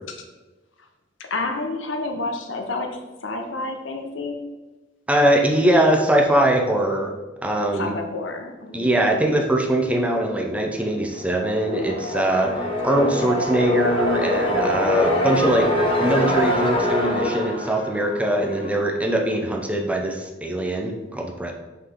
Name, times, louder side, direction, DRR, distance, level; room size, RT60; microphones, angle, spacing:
voice 1, 1.3-4.4 7.7-8.9, left 2 dB, 80° left, 4 dB, 1.0 m, -29 dB
voice 2, 5.1-7.1 7.4-7.9 8.7-15.7 16.0-21.5, right 1 dB, 5° right, 1 dB, 0.7 m, -21 dB
sound 1, 11.2-18.9, left 1 dB, 30° left, 1.1 m, -24 dB
6.2 x 5.6 x 3.7 m, 1.2 s
head